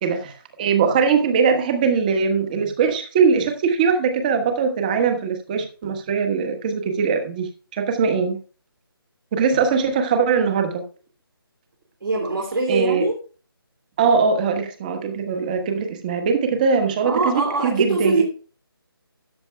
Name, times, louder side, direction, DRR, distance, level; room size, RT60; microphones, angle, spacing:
voice 1, 0.0-8.4 9.3-10.8 12.7-13.1 14.0-18.2, right 5 dB, 20° right, 1.2 m, -21 dB
voice 2, 12.0-13.1 17.0-18.2, right 3 dB, 65° right, 3.1 m, -22 dB
13.5 x 9.8 x 2.3 m
figure-of-eight pair, 165°, 13 cm